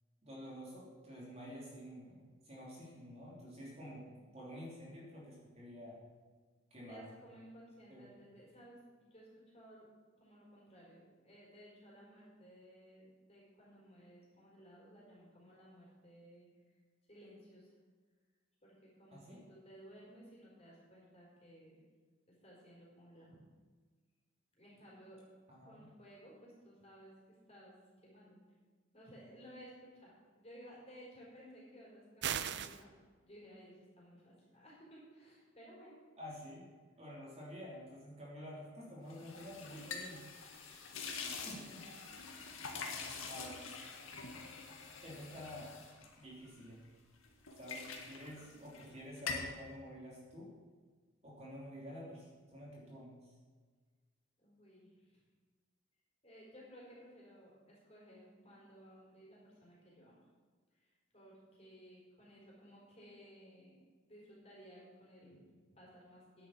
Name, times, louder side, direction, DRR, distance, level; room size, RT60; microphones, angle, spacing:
voice 1, 0.2-4.1 4.3-6.0 6.7-7.1 7.9-8.1 19.1-19.4 25.5-25.8 36.2-36.7 37.0-40.2 41.4-41.9 43.3-43.6 45.0-45.7 46.2-46.8 47.5-50.5 51.2-53.3, equal, 30° right, -5 dB, 3.2 m, -50 dB
voice 2, 6.9-9.9 10.2-16.5 17.1-17.7 18.6-21.8 22.3-23.4 24.5-25.3 25.6-27.1 27.5-27.7 28.0-28.4 28.9-32.9 33.2-36.0 39.7-40.0 40.4-40.9 41.5-41.8 54.4-55.2 56.2-60.2 60.7-63.8 64.1-66.5, equal, 30° left, -5 dB, 4.4 m, -57 dB
sound 1, 32.2-32.8, right 9 dB, 55° right, 0.5 m, -37 dB
sound 2, 39.1-46.9 47.2-48.9 49.2-49.6, left 5 dB, 85° left, 1.8 m, -45 dB
10.0 x 8.4 x 7.3 m, 1.5 s
head